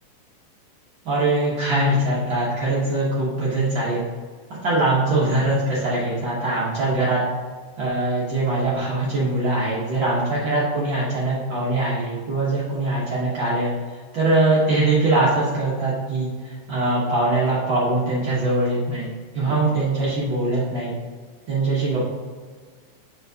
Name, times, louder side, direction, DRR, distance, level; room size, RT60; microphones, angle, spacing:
voice 1, 1.0-4.0 4.6-7.2 7.8-13.7 14.1-20.9 21.5-22.0, right 2 dB, 90° right, -8 dB, 1.0 m, -22 dB
6.6 x 5.3 x 2.7 m, 1.5 s
omnidirectional pair, 3.9 m